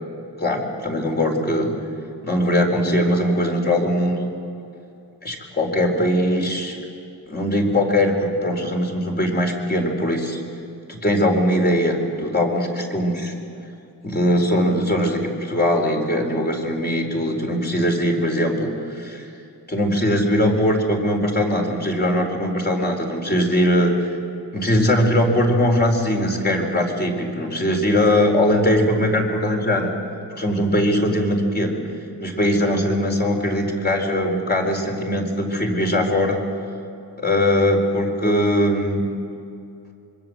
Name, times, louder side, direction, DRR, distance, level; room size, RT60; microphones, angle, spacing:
voice 1, 0.4-1.7 2.2-4.3 5.2-6.8 7.3-10.4 10.9-13.3 14.0-19.3 19.7-24.1 24.5-29.9 30.4-31.8 32.2-36.4 37.2-39.0, left 1 dB, 25° left, 1 dB, 4.3 m, -20 dB
26.0 x 24.0 x 7.8 m, 2.7 s
wide cardioid pair, 145°, 38 cm